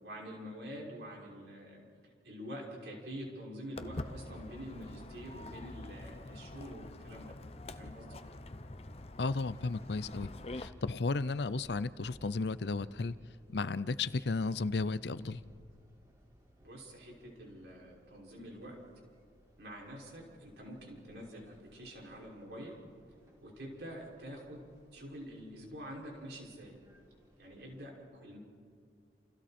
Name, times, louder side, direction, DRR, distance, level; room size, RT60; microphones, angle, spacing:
voice 1, 0.0-1.8 2.2-7.4 7.8-8.2 16.6-18.8 19.6-22.7 23.4-24.6 24.9-26.8 27.4-28.4, equal, 70° right, -2 dB, 5.8 m, -46 dB
Walk footsteps, 3.8-10.7, left 2 dB, 35° left, 0.7 m, -46 dB
voice 2, 9.2-10.3 10.5-13.1 13.5-15.4, left 3 dB, 75° left, 16 dB, 0.6 m, -34 dB
sound 1, 9.4-27.8, equal, 20° right, 3.4 m, -62 dB
29.5 x 29.0 x 4.4 m, 2.2 s
head